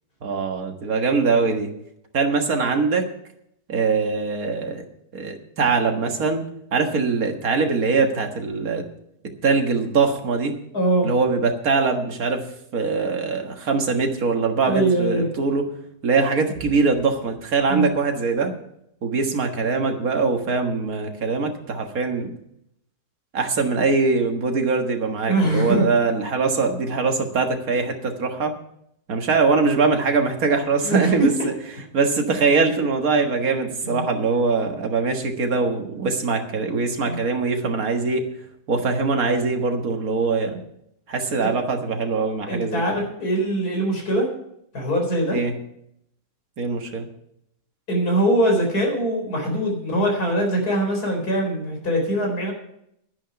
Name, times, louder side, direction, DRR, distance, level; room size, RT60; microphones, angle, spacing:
voice 1, 0.2-1.7 2.1-3.1 3.7-4.8 5.1-6.4 6.7-8.8 9.4-10.6 11.0-12.5 12.7-15.7 16.0-18.5 19.0-22.3 23.3-28.5 29.1-31.5 31.9-38.3 38.7-40.6 41.1-43.0 45.3-45.6 46.6-47.1, right 4 dB, 70° right, 4 dB, 2.0 m, -22 dB
voice 2, 10.7-11.1 14.7-15.3 17.7-17.9 25.3-25.8 30.8-31.3 33.8-34.0 37.0-37.2 41.4-41.6 42.5-44.3 44.7-45.4 47.9-52.5, right 1 dB, 85° left, 1 dB, 4.8 m, -22 dB
11.5 x 10.0 x 5.7 m, 0.74 s
omnidirectional pair, 1.6 m